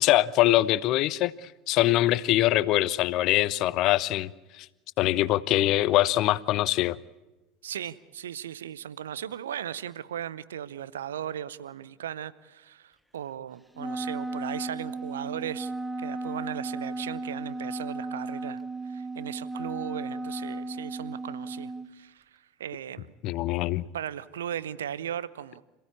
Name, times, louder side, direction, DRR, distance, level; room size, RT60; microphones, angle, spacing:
voice 1, 0.0-1.3 1.7-4.3 4.6-4.7 5.0-7.0 23.2-23.8, left 15 dB, 50° left, 0.7 m, -23 dB
voice 2, 7.6-15.7 16.0-23.1 23.9-25.6, right 10 dB, 70° right, 0.7 m, -37 dB
Wind instrument woodwind instrument, 13.8-21.9, right 2 dB, ahead, 0.9 m, -35 dB
27.0 x 16.0 x 8.6 m
figure-of-eight pair, 75°, 0 cm